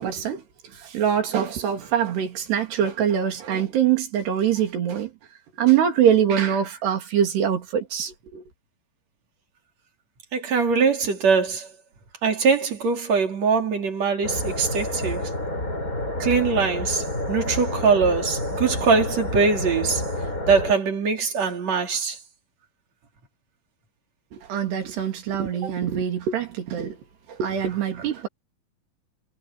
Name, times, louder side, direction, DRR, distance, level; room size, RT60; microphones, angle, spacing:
voice 1, 0.0-5.1 5.6-8.4 24.3-27.0 27.3-28.3, right 9 dB, 90° right, 5.2 m, -24 dB
voice 2, 10.3-11.7 12.2-15.2 16.2-20.0 20.5-22.2, right 5 dB, 45° right, 4.0 m, -22 dB
sound 1, 14.2-20.7, left 1 dB, 20° left, 6.8 m, -29 dB
omnidirectional pair, 4.6 m